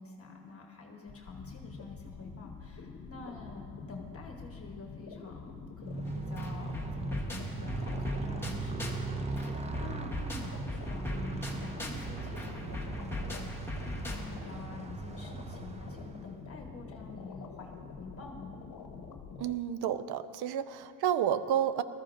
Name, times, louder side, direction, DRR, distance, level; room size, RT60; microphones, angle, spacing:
voice 1, 0.0-18.5, left 3 dB, 35° left, 1 dB, 1.1 m, -47 dB
sound 1, 1.1-19.5, left 5 dB, 60° left, 1.0 m, -46 dB
Motorcycle, 5.8-16.5, right 3 dB, 20° right, 0.4 m, -39 dB
sound 2, 6.1-6.2 6.4-9.1 9.4-14.5, left 1 dB, 5° left, 1.0 m, -40 dB
voice 2, 19.4-21.8, right 10 dB, 70° right, 12 dB, 0.6 m, -30 dB
20.0 x 13.5 x 2.5 m, 2.6 s
cardioid pair, 165°, 40 cm